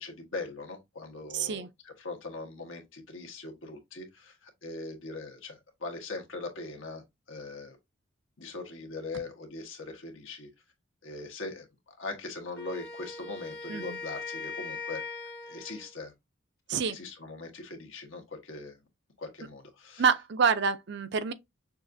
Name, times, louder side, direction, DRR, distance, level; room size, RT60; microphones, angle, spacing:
voice 1, 0.0-7.8 8.4-10.5 11.0-15.0 15.5-16.1 16.9-18.8 19.2-20.1, left 3 dB, 70° left, 1.3 m, -41 dB
voice 2, 1.3-1.7 13.7-14.0 16.7-17.0 20.0-21.3, right 6 dB, 55° right, 0.5 m, -27 dB
Wind instrument woodwind instrument, 12.5-15.9, left 4 dB, 50° left, 1.4 m, -40 dB
6.3 x 2.5 x 2.6 m
head